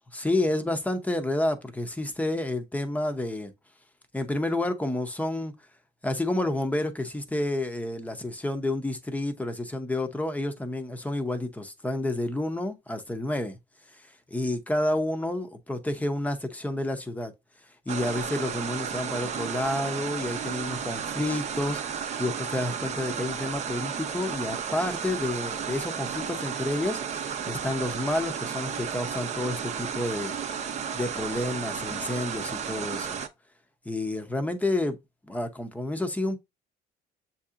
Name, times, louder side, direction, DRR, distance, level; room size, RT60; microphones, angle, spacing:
voice 1, 0.1-3.5 4.1-5.5 6.0-13.6 13.9-17.3 17.9-30.3 30.9-33.2 33.8-35.0 35.3-36.4, left 1 dB, 10° left, 0.7 m, -30 dB
sound 1, 17.9-33.3, right 7 dB, 40° right, 0.6 m, -33 dB
7.2 x 2.8 x 2.4 m
cardioid pair, 110°, 17 cm